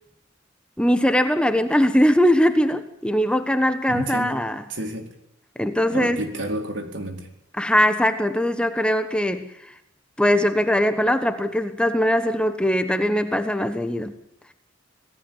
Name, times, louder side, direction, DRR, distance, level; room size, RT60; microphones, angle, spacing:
voice 1, 0.8-4.6 5.6-6.2 7.6-9.7 10.2-14.1, equal, 5° left, 9 dB, 1.2 m, -21 dB
voice 2, 3.9-4.4 4.7-5.1 5.9-7.3, right 1 dB, 65° right, 5 dB, 4.5 m, -30 dB
27.5 x 17.5 x 9.0 m, 0.80 s
head